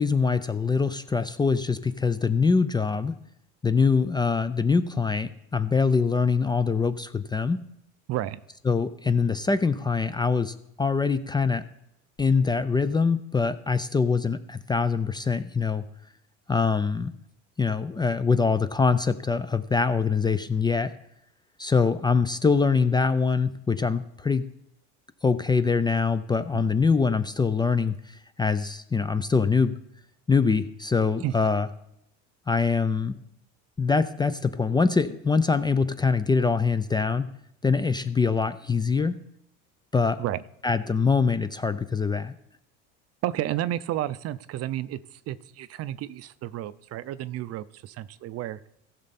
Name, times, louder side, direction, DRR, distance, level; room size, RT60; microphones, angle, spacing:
voice 1, 0.0-3.1 3.6-7.6 8.7-11.6 12.2-15.8 16.5-17.1 17.6-20.9 21.6-24.5 25.2-29.7 30.3-31.7 32.5-33.2 33.8-37.3 37.6-39.2 39.9-40.2 40.6-42.3, left 5 dB, 15° left, 12 dB, 0.4 m, -24 dB
voice 2, 8.1-8.4 26.5-26.6 31.2-31.3 40.2-40.4 43.2-48.6, right 13 dB, 45° right, 17 dB, 0.5 m, -31 dB
15.0 x 6.6 x 4.2 m, 0.78 s
supercardioid pair, 105°, 34 cm